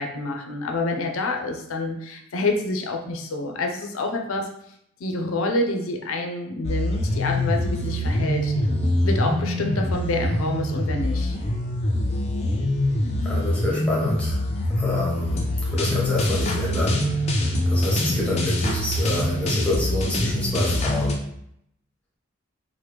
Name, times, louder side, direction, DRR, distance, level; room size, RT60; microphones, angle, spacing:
voice 1, 0.0-4.5 5.0-8.5 9.0-11.4, left 2 dB, 85° left, 3 dB, 0.5 m, -27 dB
sound 1, 6.6-21.1, left 1 dB, 30° left, 0.4 m, -24 dB
voice 2, 13.2-14.4 14.8-17.0 17.7-21.2, left 1 dB, 5° left, -5 dB, 0.8 m, -27 dB
2.9 x 2.1 x 3.3 m, 0.74 s
head